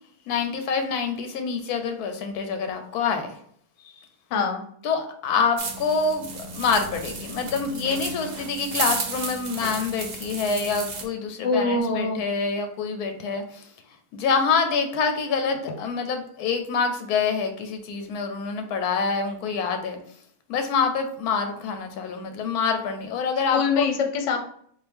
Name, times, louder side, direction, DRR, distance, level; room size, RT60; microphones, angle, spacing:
voice 1, 0.3-3.4 3.8-3.9 4.8-13.7 14.1-20.0 20.5-23.9, left 5 dB, 90° left, 6 dB, 1.1 m, -26 dB
voice 2, 4.3-4.6 11.4-12.2 23.5-24.4, left 4 dB, 60° left, 4 dB, 0.9 m, -24 dB
sound 1, 5.6-11.0, right 4 dB, 85° right, 0.3 m, -33 dB
3.7 x 2.4 x 3.4 m, 0.63 s
omnidirectional pair, 1.6 m